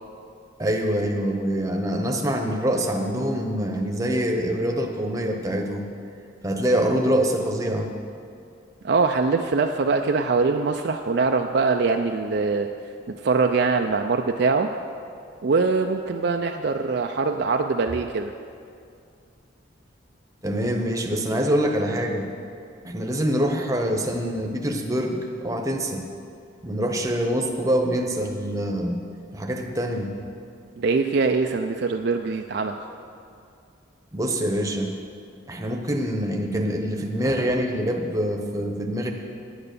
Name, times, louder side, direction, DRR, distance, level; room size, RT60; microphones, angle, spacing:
voice 1, 0.6-5.9 6.4-7.9 20.4-22.3 22.8-26.0 26.6-29.0 29.3-30.1 34.1-34.9 35.5-39.1, equal, 15° right, 2 dB, 0.9 m, -25 dB
voice 2, 8.8-12.7 13.2-14.7 15.4-18.3 30.8-32.8, right 4 dB, 55° right, 4 dB, 0.4 m, -23 dB
9.6 x 9.0 x 6.7 m, 2.4 s
head